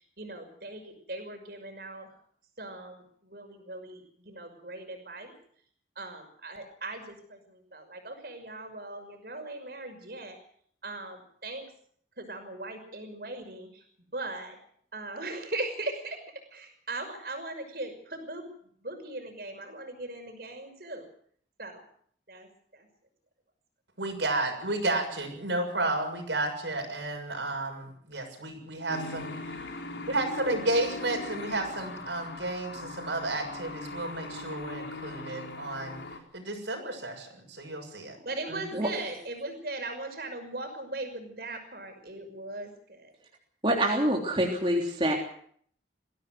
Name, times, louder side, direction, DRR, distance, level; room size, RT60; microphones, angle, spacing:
voice 1, 0.2-2.1 2.6-5.3 6.0-10.4 10.8-11.7 12.2-13.8 14.1-14.5 14.9-16.2 16.5-18.5 18.8-21.1 21.6-21.8 22.3-22.5 22.7-22.9 38.2-43.1, right 2 dB, 55° right, 5 dB, 5.9 m, -39 dB
voice 2, 24.0-29.3 30.1-36.0 36.3-38.2 38.5-38.6, right 2 dB, 80° right, 3 dB, 6.8 m, -32 dB
sound 1, 28.9-36.2, left 2 dB, 85° left, 4.1 m, -40 dB
voice 3, 43.6-45.1, right 1 dB, 30° right, 0 dB, 3.3 m, -26 dB
22.0 x 16.0 x 7.9 m, 0.62 s
head